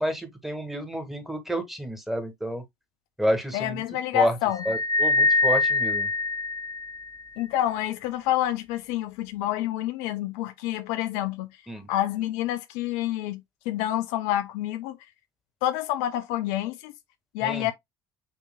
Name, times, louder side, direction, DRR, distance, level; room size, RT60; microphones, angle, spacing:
voice 1, 0.0-2.6 3.2-3.8 4.1-4.3 4.6-6.1 11.7-11.9 17.4-17.7, equal, ahead, 1.7 m, -29 dB
voice 2, 3.5-4.6 7.4-11.5 11.9-15.0 15.6-16.9 17.3-17.7, left 13 dB, 70° left, 0.6 m, -28 dB
sound 1, 4.6-7.2, left 3 dB, 30° left, 0.6 m, -24 dB
7.3 x 2.9 x 2.2 m
hypercardioid pair, 65°, 13 cm